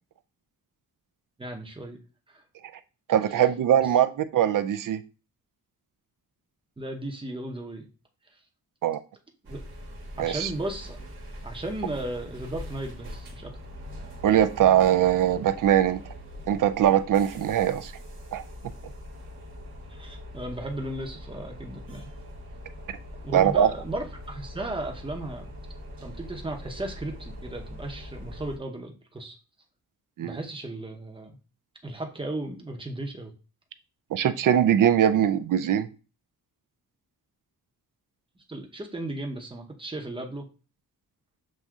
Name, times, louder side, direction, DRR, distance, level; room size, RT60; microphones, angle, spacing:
voice 1, 1.4-2.0 2.3-2.4 6.8-7.9 9.5-9.6 10.2-11.0 11.4-13.5 19.9-22.1 23.2-25.4 26.0-29.4 30.2-31.4 31.8-33.3 38.5-40.5, right 1 dB, 15° right, 2 dB, 0.7 m, -35 dB
voice 2, 3.1-5.0 8.8-9.0 10.2-10.5 14.2-16.0 16.5-17.9 18.3-18.4 23.3-23.7 30.2-30.4 34.1-35.9, right 10 dB, 60° right, 11 dB, 0.4 m, -21 dB
sound 1, 9.4-28.6, equal, 75° right, 1.2 m, -42 dB
7.4 x 2.7 x 2.3 m, 0.33 s
wide cardioid pair, 115°, 37 cm